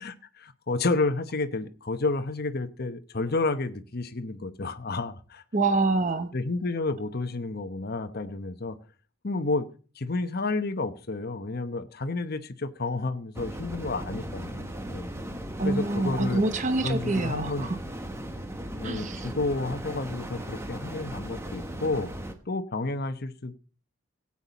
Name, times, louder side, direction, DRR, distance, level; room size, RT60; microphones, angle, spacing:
voice 1, 0.0-5.4 6.3-8.8 9.2-9.7 10.0-15.1 15.6-16.4 16.8-17.7 18.8-22.1 22.5-23.5, left 3 dB, 45° left, 9 dB, 0.9 m, -30 dB
voice 2, 5.5-6.3 15.6-17.8 18.8-19.3, right 3 dB, 35° right, 10 dB, 0.7 m, -26 dB
sound 1, 13.4-22.3, right 1 dB, 10° right, 1.0 m, -37 dB
16.5 x 8.6 x 4.1 m, 0.39 s
head